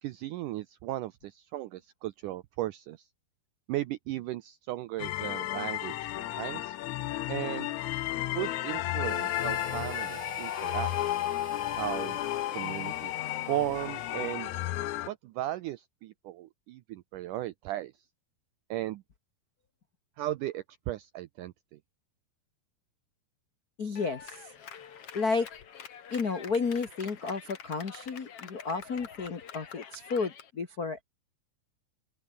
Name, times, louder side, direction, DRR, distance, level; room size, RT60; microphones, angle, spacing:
voice 1, 0.0-3.0 3.7-6.8 7.3-7.7 8.3-10.9 11.8-12.2 12.5-13.1 13.5-14.5 15.1-17.9 18.7-19.0 20.2-21.5, right 15 dB, 80° right, 1.8 m, -36 dB
sound 1, 5.0-15.1, left 15 dB, 80° left, 1.7 m, -33 dB
Harmonica, 9.0-15.0, right 4 dB, 55° right, 7.6 m, -47 dB
voice 2, 23.8-24.5 25.1-25.5 26.1-31.0, left 4 dB, 65° left, 0.9 m, -32 dB
Clapping, 24.0-30.5, left 8 dB, 45° left, 2.3 m, -47 dB
open air
omnidirectional pair, 4.5 m